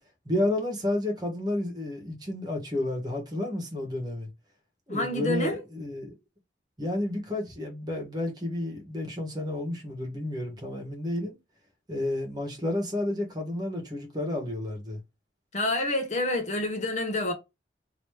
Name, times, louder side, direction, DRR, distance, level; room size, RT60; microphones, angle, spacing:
voice 1, 0.2-4.3 4.9-6.1 6.8-11.4 11.9-15.0, left 1 dB, 20° right, 1.3 m, -31 dB
voice 2, 4.9-5.6 15.5-17.3, left 1 dB, 40° left, 0.9 m, -28 dB
3.0 x 2.8 x 3.2 m
head